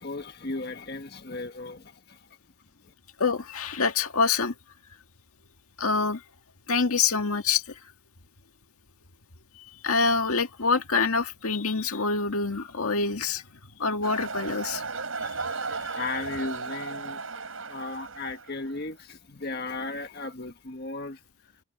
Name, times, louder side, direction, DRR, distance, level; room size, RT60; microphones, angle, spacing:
voice 1, 0.0-2.3 2.8-2.9 15.2-15.3 15.6-21.2, left 3 dB, 45° left, 1.5 m, -36 dB
voice 2, 3.2-4.5 5.8-6.2 6.7-7.8 9.5-13.4 13.8-14.9 15.2-15.3 15.9-16.0, left 4 dB, 85° left, 1.8 m, -26 dB
sound 1, 14.0-18.8, right 4 dB, 70° right, 5.2 m, -35 dB
head